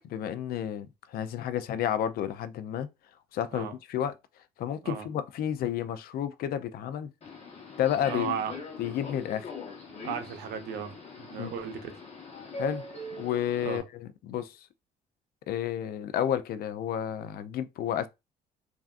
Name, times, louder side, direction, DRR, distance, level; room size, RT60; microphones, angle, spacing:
voice 1, 0.1-2.9 3.3-4.1 4.6-7.1 7.8-8.4 8.8-9.5 11.4-11.5 12.6-12.8 13.2-14.6 15.5-18.1, left 10 dB, 60° left, 0.4 m, -31 dB
Subway metro underground, 7.2-13.8, left 3 dB, 40° left, 1.0 m, -42 dB
voice 2, 8.1-8.6 10.0-12.0 13.6-13.8 14.3-14.4, right 7 dB, 75° right, 0.7 m, -35 dB
3.3 x 2.5 x 2.4 m
cardioid pair, 110°, 17 cm